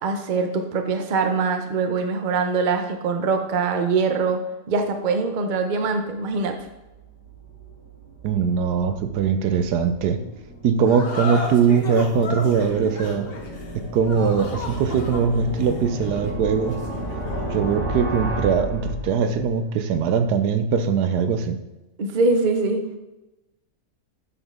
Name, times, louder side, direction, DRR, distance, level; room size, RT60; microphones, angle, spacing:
voice 1, 0.0-4.4 4.7-6.6 22.0-22.9, right 4 dB, 40° right, 5 dB, 0.7 m, -23 dB
sound 1, 6.6-19.5, right 1 dB, 20° left, 2.4 m, -33 dB
voice 2, 8.2-10.2 10.6-13.3 13.7-16.8 17.5-21.6, right 6 dB, 90° right, 9 dB, 1.2 m, -21 dB
sound 2, 10.8-17.6, left 3 dB, 40° left, 1.1 m, -34 dB
7.7 x 6.1 x 3.6 m, 1.0 s
omnidirectional pair, 1.7 m